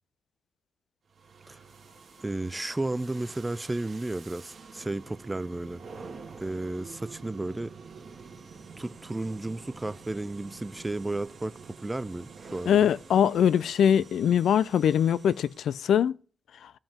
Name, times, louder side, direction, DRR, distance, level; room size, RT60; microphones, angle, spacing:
sound 1, 1.1-15.9, right 5 dB, 50° right, 1.8 m, -48 dB
voice 1, 2.2-5.8 6.4-7.8 8.8-12.9, right 2 dB, 15° right, 0.4 m, -33 dB
voice 2, 12.7-16.2, left 9 dB, 80° left, 0.3 m, -22 dB
15.0 x 5.2 x 3.6 m
cardioid pair, 110°, 0 cm